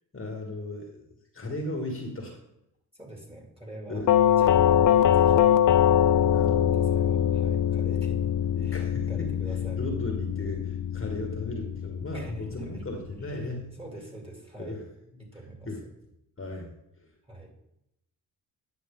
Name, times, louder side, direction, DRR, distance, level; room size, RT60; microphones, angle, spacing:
voice 1, 0.1-2.4 3.9-4.1 6.3-7.5 8.4-13.7 14.6-14.9 15.4-15.8 16.4-16.7 17.0-17.1, left 1 dB, 30° left, 1 dB, 1.7 m, -37 dB
voice 2, 2.9-5.5 6.1-9.8 12.1-12.8 13.2-13.5 13.8-14.8 15.2-15.9 17.3-17.6, right 1 dB, 15° right, 0 dB, 2.8 m, -45 dB
Doorbell, 4.1-12.9, left 10 dB, 50° left, 0.6 m, -23 dB
9.4 x 6.1 x 3.8 m, 0.83 s
supercardioid pair, 65°, 42 cm